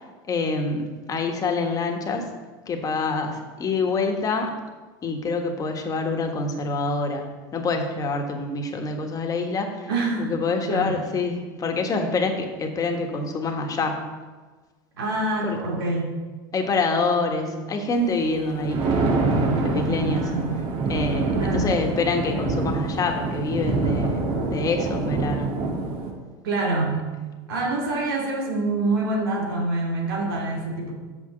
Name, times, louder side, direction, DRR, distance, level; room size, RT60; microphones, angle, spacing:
voice 1, 0.3-2.3 2.7-4.5 5.0-7.3 7.5-9.9 10.2-14.1 15.4-15.6 16.5-19.0 19.6-20.3 20.9-24.2 24.5-25.5, left 3 dB, 30° left, 3 dB, 1.4 m, -26 dB
voice 2, 9.9-10.3 10.7-11.0 15.0-16.1 20.0-20.8 21.3-21.7 26.4-27.1 27.5-30.9, right 2 dB, 85° right, -1 dB, 2.4 m, -26 dB
Thunder, 18.4-26.1, right 3 dB, 50° right, 1.7 m, -25 dB
7.0 x 5.9 x 6.6 m, 1.3 s
supercardioid pair, 105°, 12 cm